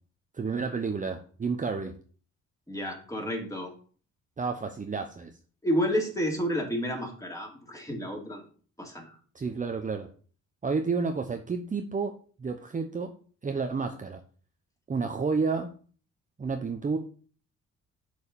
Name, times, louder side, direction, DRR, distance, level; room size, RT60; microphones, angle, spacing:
voice 1, 0.3-1.9 4.4-5.3 9.3-10.1 10.6-12.1 12.4-13.1 13.4-14.2 14.9-15.7 16.4-17.0, right 4 dB, 25° right, 5 dB, 0.9 m, -30 dB
voice 2, 2.7-3.7 5.6-8.4 8.8-9.1, equal, 10° left, 0 dB, 3.0 m, -30 dB
6.9 x 4.8 x 6.9 m, 0.42 s
cardioid pair, 90°, 30 cm